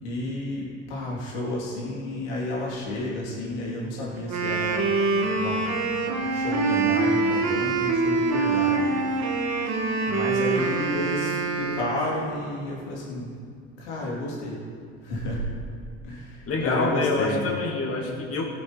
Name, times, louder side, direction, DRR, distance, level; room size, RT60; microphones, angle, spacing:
voice 1, 0.0-4.8 5.3-5.8 6.1-8.9 10.0-13.3 13.8-14.6 15.0-15.4 16.0-17.5, left 1 dB, 80° left, -4 dB, 3.1 m, -31 dB
Wind instrument woodwind instrument, 4.2-12.3, right 3 dB, 50° right, 1.8 m, -25 dB
voice 2, 16.5-18.4, left 3 dB, 40° left, 0 dB, 2.7 m, -26 dB
17.5 x 6.4 x 4.4 m, 2.2 s
hypercardioid pair, 70°, 34 cm